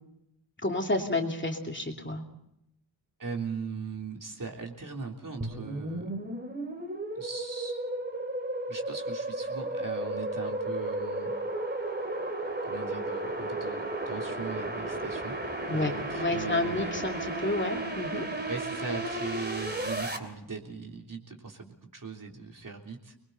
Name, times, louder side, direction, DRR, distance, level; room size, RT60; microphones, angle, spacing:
voice 1, 0.6-2.2 15.7-18.3, left 2 dB, 25° left, 2 dB, 2.8 m, -30 dB
voice 2, 3.2-6.1 7.2-7.8 8.7-11.3 12.7-15.4 15.7-16.9 18.5-23.1, right 5 dB, 45° right, 1 dB, 3.4 m, -39 dB
sound 1, 5.4-20.2, right 2 dB, 25° right, 2.7 m, -34 dB
29.0 x 21.5 x 4.1 m, 0.79 s
wide cardioid pair, 125°, 44 cm